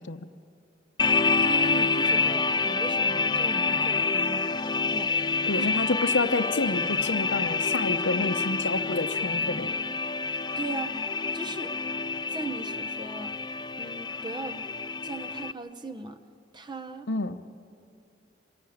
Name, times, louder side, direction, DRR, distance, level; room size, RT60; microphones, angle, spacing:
sound 1, 1.0-15.5, left 4 dB, 25° left, 0.4 m, -27 dB
voice 1, 1.4-5.7 10.3-11.0 11.3-11.7 12.3-13.4 13.8-14.6 15.0-16.2 16.5-17.1, right 3 dB, 25° right, 9 dB, 1.0 m, -38 dB
voice 2, 5.5-9.7 17.1-17.4, left 2 dB, 70° left, 10 dB, 0.9 m, -29 dB
27.0 x 16.5 x 8.8 m, 2.6 s
head